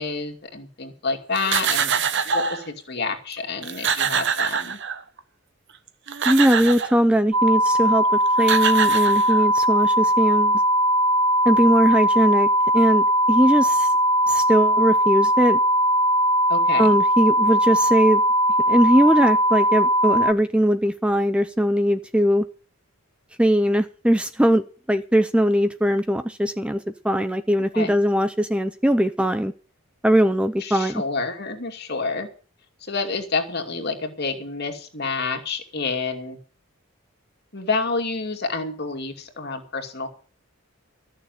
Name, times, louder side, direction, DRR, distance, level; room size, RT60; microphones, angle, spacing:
voice 1, 0.0-4.8 16.5-16.9 27.7-27.9 30.6-32.3 32.8-36.4 37.5-40.1, left 4 dB, 50° left, 2.6 m, -28 dB
sound 1, 1.4-2.7 3.3-3.4 3.6-5.2 5.9-7.0 8.1-8.2 8.4-9.6, right 7 dB, 60° right, 1.1 m, -25 dB
voice 2, 6.3-8.0 8.4-10.6 11.5-12.5 12.7-13.9 14.3-15.6 16.8-18.2 18.7-22.4 23.4-26.8 27.0-29.5 30.0-31.0, equal, 5° right, 0.6 m, -20 dB
sound 2, 7.3-20.3, equal, 80° right, 0.8 m, -19 dB
14.5 x 6.8 x 9.4 m
head